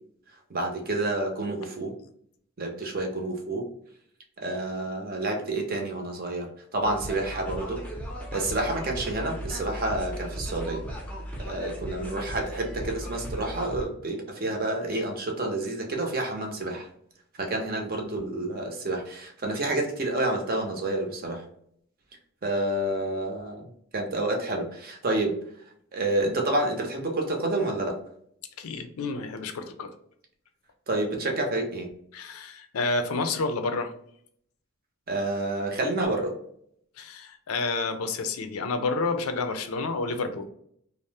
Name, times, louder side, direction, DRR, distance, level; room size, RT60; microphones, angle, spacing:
voice 1, 0.5-1.9 2.6-3.7 4.4-7.8 8.3-10.8 11.4-16.9 17.4-21.4 22.4-23.7 23.9-25.4 25.9-28.0 30.9-31.9 35.1-36.3, right 2 dB, 45° right, 2 dB, 0.6 m, -29 dB
sound 1, 6.8-13.8, right 1 dB, 5° left, 0.5 m, -36 dB
voice 2, 28.6-29.9 32.1-33.9 37.0-40.5, left 3 dB, 85° left, 8 dB, 0.4 m, -29 dB
2.7 x 2.0 x 3.2 m, 0.68 s
head